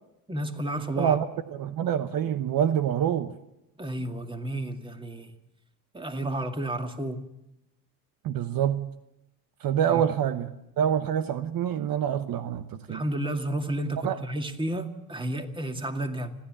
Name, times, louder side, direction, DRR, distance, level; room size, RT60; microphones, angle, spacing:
voice 1, 0.3-1.2 3.8-5.3 5.9-7.2 9.9-10.1 12.9-16.3, right 1 dB, 10° right, 2.2 m, -31 dB
voice 2, 1.0-3.3 8.2-8.9 9.6-13.0 14.0-14.2, right 9 dB, 60° right, 1.0 m, -26 dB
29.5 x 10.5 x 8.9 m
supercardioid pair, 85°, 40 cm